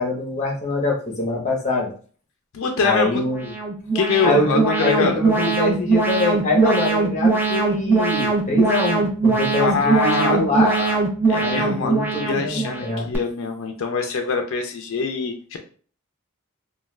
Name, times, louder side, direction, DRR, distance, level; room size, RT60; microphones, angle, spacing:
voice 1, 0.0-1.9 2.8-3.5 4.2-10.7 11.4-13.1, left 2 dB, 35° left, -1 dB, 0.7 m, -24 dB
voice 2, 2.5-3.1 3.9-5.2 9.6-11.0 11.3-15.6, left 5 dB, 60° left, 4 dB, 0.4 m, -24 dB
Alarm, 3.2-13.2, right 4 dB, 10° right, 0.4 m, -21 dB
2.2 x 2.2 x 3.0 m, 0.42 s
head